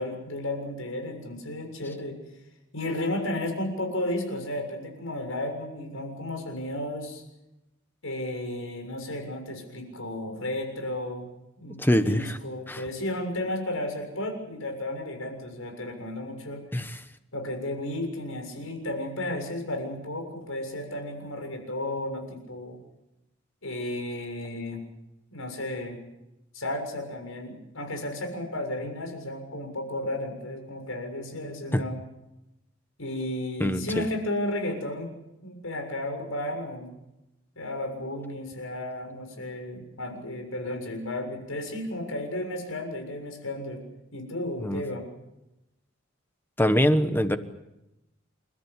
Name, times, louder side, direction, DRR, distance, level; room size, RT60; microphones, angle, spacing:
voice 1, 0.0-2.2 2.7-7.2 8.0-11.3 11.6-16.6 17.3-22.8 23.6-24.8 25.3-26.0 26.5-32.0 33.0-35.1 35.4-36.9 37.6-43.8 44.1-45.1, left 1 dB, 85° left, 4 dB, 7.0 m, -33 dB
voice 2, 11.8-12.4 12.7-12.8 16.7-17.0 31.7-31.8 33.6-34.0 44.6-44.8 46.6-47.4, equal, 10° left, 10 dB, 1.2 m, -23 dB
29.5 x 14.0 x 10.0 m, 0.92 s
head